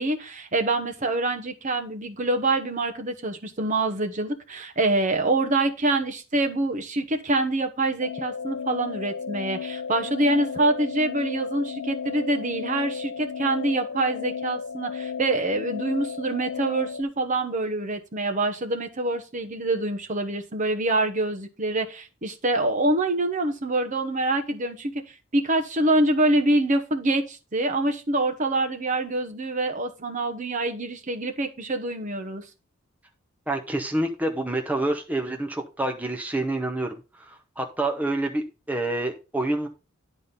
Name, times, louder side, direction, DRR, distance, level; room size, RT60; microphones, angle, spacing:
voice 1, 0.0-24.9 25.3-32.4, right 2 dB, 35° right, 1.0 m, -25 dB
sound 1, 8.0-17.0, left 6 dB, 85° left, 0.4 m, -34 dB
voice 2, 33.5-39.7, right 2 dB, 5° right, 0.8 m, -28 dB
10.5 x 4.2 x 5.3 m
head